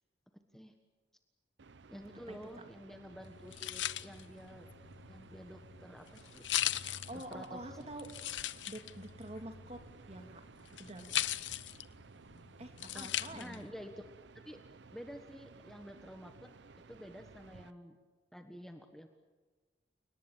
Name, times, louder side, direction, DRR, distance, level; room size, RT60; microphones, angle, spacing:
sound 1, 1.6-17.7, right 4 dB, 75° right, 0.7 m, -57 dB
voice 1, 1.9-4.7 5.1-7.9 12.9-14.1 14.4-14.6 14.9-16.5 16.9-18.0 18.3-19.1, equal, ahead, 5 dB, 1.4 m, -50 dB
sound 2, 3.2-13.7, left 12 dB, 80° left, 0.7 m, -40 dB
voice 2, 6.8-8.1 8.4-9.8 10.1-10.4 10.8-11.2 12.6-13.6, right 1 dB, 35° right, 6 dB, 2.6 m, -47 dB
29.5 x 19.5 x 7.4 m, 1.3 s
head